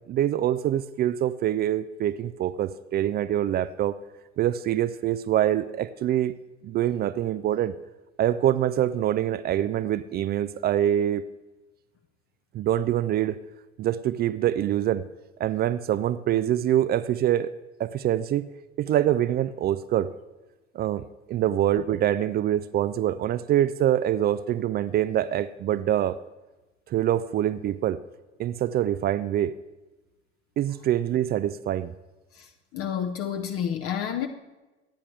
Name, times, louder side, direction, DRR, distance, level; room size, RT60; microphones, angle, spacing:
voice 1, 0.1-4.0 4.4-6.3 6.6-7.7 8.2-11.2 12.5-13.4 13.8-15.0 15.4-17.5 17.8-18.5 18.8-20.1 20.7-26.2 26.9-28.0 28.4-29.5 30.6-31.9, right 11 dB, 30° right, 15 dB, 0.4 m, -25 dB
voice 2, 32.3-34.3, left 8 dB, 40° left, 6 dB, 0.9 m, -30 dB
23.5 x 9.7 x 3.3 m, 1.1 s
figure-of-eight pair, 65°, 35 cm